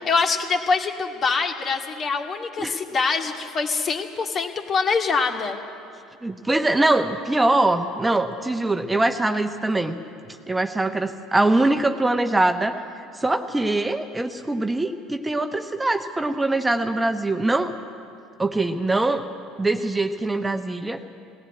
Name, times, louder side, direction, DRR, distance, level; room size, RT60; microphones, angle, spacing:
voice 1, 0.0-5.6, left 4 dB, 40° left, 3 dB, 2.3 m, -24 dB
voice 2, 6.2-10.0 10.5-12.7 13.1-17.7 18.4-19.2 19.6-21.0, right 2 dB, 15° right, 6 dB, 1.1 m, -23 dB
19.5 x 17.0 x 9.5 m, 2.5 s
hypercardioid pair, 65°, 0 cm